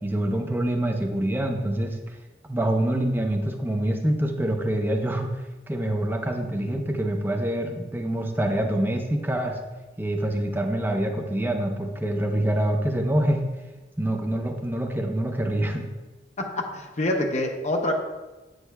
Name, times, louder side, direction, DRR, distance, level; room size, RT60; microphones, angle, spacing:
voice 1, 0.0-2.2 2.5-9.6 10.0-13.4 14.0-15.8, right 1 dB, 10° right, 3 dB, 0.5 m, -26 dB
voice 2, 16.4-17.9, left 1 dB, 40° left, 3 dB, 0.6 m, -26 dB
8.3 x 6.3 x 2.3 m, 1.1 s
head